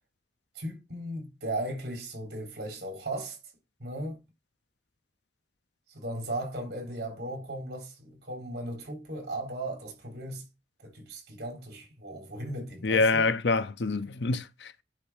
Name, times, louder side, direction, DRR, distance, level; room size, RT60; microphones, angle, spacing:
voice 1, 0.6-3.4 3.8-4.2 5.9-10.4 10.8-13.2, right 1 dB, 65° right, 3.7 m, -37 dB
voice 2, 12.8-14.8, left 3 dB, 75° left, 0.7 m, -26 dB
10.0 x 3.4 x 4.9 m
head